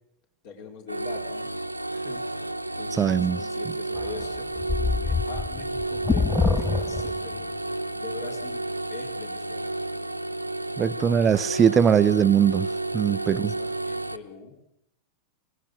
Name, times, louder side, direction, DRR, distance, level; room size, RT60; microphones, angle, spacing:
voice 1, 0.4-1.5 1.9-9.7 10.6-10.8 12.8-14.7, left 5 dB, 50° left, 4.6 m, -44 dB
sound 1, 0.9-14.2, right 2 dB, 90° right, 0.7 m, -31 dB
voice 2, 3.0-3.4 10.8-12.7 12.9-13.5, right 8 dB, 25° right, 0.7 m, -21 dB
sound 2, 4.0-7.4, left 4 dB, 10° left, 0.8 m, -26 dB
23.5 x 19.5 x 6.6 m
figure-of-eight pair, 90°, 0 cm